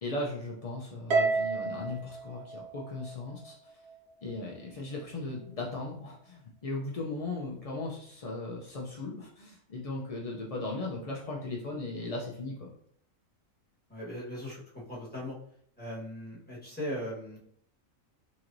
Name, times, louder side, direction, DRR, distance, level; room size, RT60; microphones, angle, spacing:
voice 1, 0.0-3.7 4.2-12.7, left 2 dB, 70° left, -3 dB, 0.3 m, -37 dB
Harp, 1.1-3.6, right 4 dB, 60° right, 0.8 m, -30 dB
voice 2, 13.9-15.3 15.8-17.4, equal, 10° left, -6 dB, 1.1 m, -39 dB
4.1 x 3.0 x 2.5 m, 0.67 s
omnidirectional pair, 1.4 m